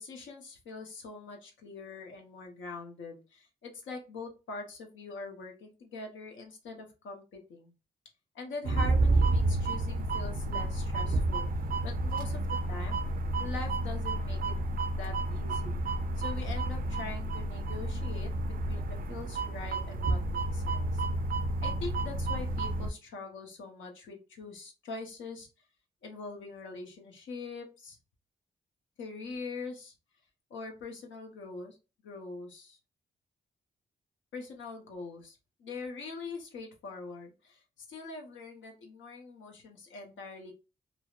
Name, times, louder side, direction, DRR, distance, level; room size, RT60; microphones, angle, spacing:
voice 1, 0.0-7.7 8.3-11.5 11.8-12.4 12.7-13.0 13.4-14.5 14.9-15.8 16.2-21.0 21.6-25.5 26.0-28.0 29.0-29.9 30.5-31.8 32.0-32.8 34.3-37.6 37.9-40.5, left 3 dB, 80° left, 2 dB, 0.7 m, -43 dB
sound 1, 8.6-22.9, right 2 dB, 50° right, 0.4 m, -30 dB
2.7 x 2.0 x 2.3 m, 0.30 s
supercardioid pair, 45°, 20 cm